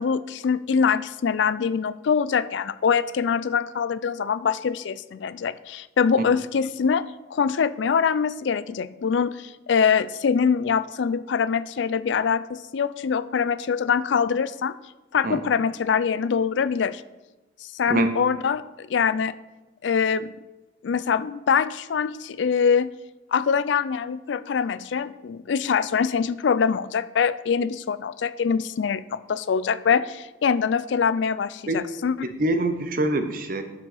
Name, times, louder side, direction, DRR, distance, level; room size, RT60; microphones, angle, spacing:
voice 1, 0.0-7.1 7.3-14.8 15.1-17.0 17.6-19.3 19.8-20.4 20.8-22.9 23.3-32.1, left 6 dB, 70° left, 16 dB, 0.4 m, -24 dB
voice 2, 32.2-33.6, right 2 dB, 45° right, 8 dB, 0.7 m, -24 dB
9.1 x 7.0 x 4.1 m, 1.1 s
head